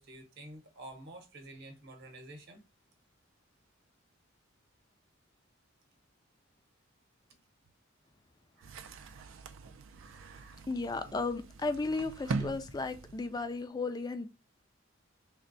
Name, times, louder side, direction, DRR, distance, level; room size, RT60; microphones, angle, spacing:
voice 1, 0.0-2.6 8.5-9.4 9.9-10.6, right 2 dB, 55° right, 0.8 m, -51 dB
sound 1, 8.6-13.6, right 4 dB, 70° right, 0.4 m, -41 dB
voice 2, 10.7-14.3, left 3 dB, 20° left, 0.4 m, -34 dB
3.3 x 2.1 x 3.8 m
head